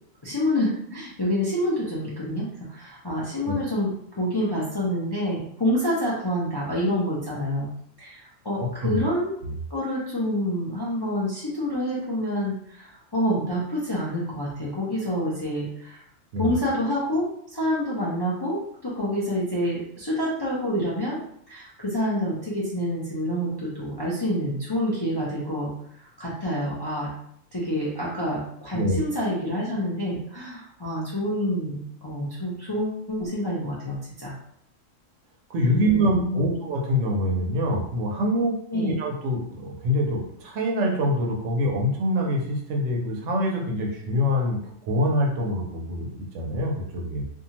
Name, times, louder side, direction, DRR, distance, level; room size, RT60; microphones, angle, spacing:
voice 1, 0.2-7.7 8.0-9.3 9.7-16.0 16.4-21.2 21.5-25.7 26.0-27.1 27.5-34.3 35.7-36.6 38.7-38.9, equal, 30° left, -7 dB, 0.4 m, -27 dB
voice 2, 8.6-9.0 9.4-9.5 16.3-16.5 28.7-29.0 35.5-47.2, equal, 75° right, 0 dB, 1.0 m, -25 dB
2.7 x 2.3 x 2.8 m, 0.68 s
omnidirectional pair, 1.3 m